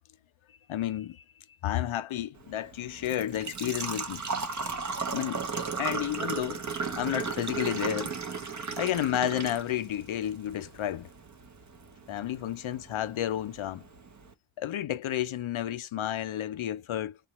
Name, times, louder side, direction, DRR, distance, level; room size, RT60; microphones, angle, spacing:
voice 1, 0.7-1.2 1.6-4.2 5.1-5.4 5.8-6.6 7.0-8.1 8.8-11.1 12.1-13.8 14.6-17.2, left 12 dB, 80° left, 0.5 m, -31 dB
Engine / Trickle dribble / Fill (with liquid), 2.4-14.3, right 5 dB, 40° right, 0.6 m, -36 dB
3.7 x 2.2 x 2.9 m
wide cardioid pair, 65°, 47 cm